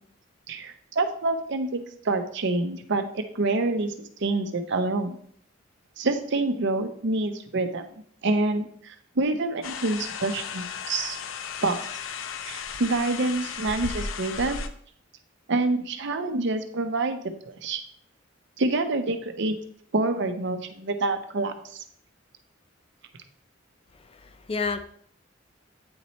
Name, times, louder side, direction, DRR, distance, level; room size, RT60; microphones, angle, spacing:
voice 1, 0.5-5.2 6.0-7.9 8.2-11.2 11.6-11.8 12.4-14.6 15.5-17.8 18.6-19.6 19.9-21.8, right 2 dB, 65° right, 7 dB, 0.7 m, -27 dB
sound 1, 9.6-14.7, left 6 dB, 85° left, 0.5 m, -35 dB
voice 2, 23.9-24.9, left 4 dB, 30° left, 10 dB, 0.4 m, -31 dB
8.7 x 3.1 x 4.1 m, 0.63 s
head